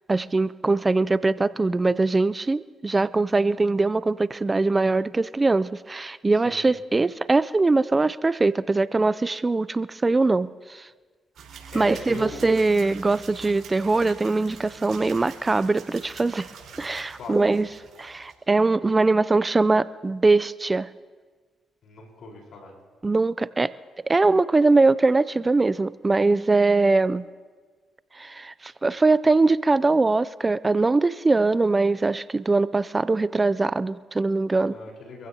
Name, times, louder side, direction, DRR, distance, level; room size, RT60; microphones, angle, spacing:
voice 1, 0.1-10.9 11.7-16.5 16.8-17.7 18.0-20.9 23.0-23.7 24.1-27.3 28.1-34.8, right 3 dB, 25° right, 17 dB, 0.4 m, -22 dB
sound 1, 11.4-18.3, right 6 dB, 70° right, 4.4 m, -45 dB
voice 2, 11.7-12.4 17.2-17.4 21.8-22.7 34.7-35.3, left 3 dB, 70° left, 0 dB, 4.3 m, -40 dB
25.5 x 15.5 x 2.9 m, 1.5 s
supercardioid pair, 60°, 0 cm